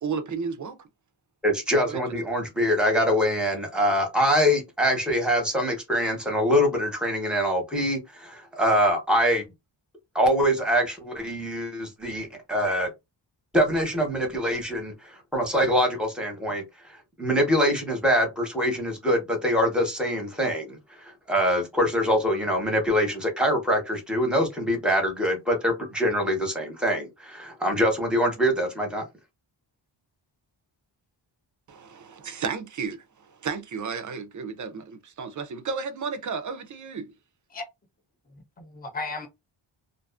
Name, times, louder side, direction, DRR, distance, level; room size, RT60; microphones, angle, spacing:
voice 1, 0.0-0.9 1.8-2.0 2.3-2.4 31.7-37.1, right 5 dB, 40° right, 0.4 m, -33 dB
voice 2, 1.4-9.4 10.1-12.9 13.5-16.6 17.2-29.0, equal, ahead, 0.8 m, -24 dB
voice 3, 38.3-39.3, left 3 dB, 20° left, 0.5 m, -35 dB
2.5 x 2.3 x 2.4 m
wide cardioid pair, 130°, 49 cm